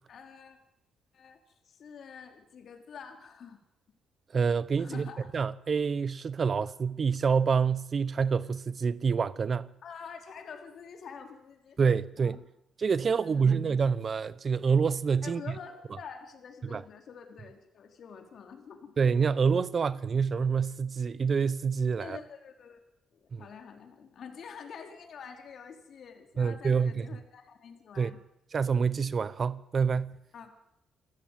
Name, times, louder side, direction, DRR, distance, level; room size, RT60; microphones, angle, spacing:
voice 1, 0.1-0.6 1.1-1.4 1.6-3.6 4.8-5.3 9.8-11.8 12.2-12.4 13.2-13.6 15.2-19.0 22.0-22.8 23.1-28.2 30.3-30.5, left 6 dB, 60° left, 4.2 m, -47 dB
voice 2, 4.3-5.1 5.3-9.7 11.8-12.4 12.8-15.4 16.7-16.8 19.0-22.2 23.3-23.4 26.4-27.1 28.0-28.1 28.5-30.1, right 5 dB, 45° right, 0.9 m, -27 dB
28.0 x 14.5 x 9.3 m
cardioid pair, 90°, 0 cm